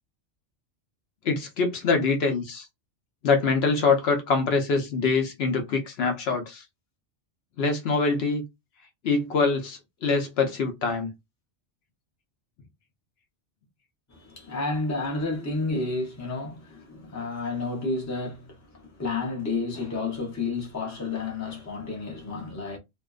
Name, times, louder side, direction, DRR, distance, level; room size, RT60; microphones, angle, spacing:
voice 1, 1.2-2.7 3.2-6.6 7.6-8.4 9.0-11.1, left 4 dB, 65° left, 0.8 m, -24 dB
voice 2, 14.1-22.8, left 3 dB, 20° left, 0.6 m, -31 dB
2.5 x 2.1 x 2.3 m
omnidirectional pair, 1.2 m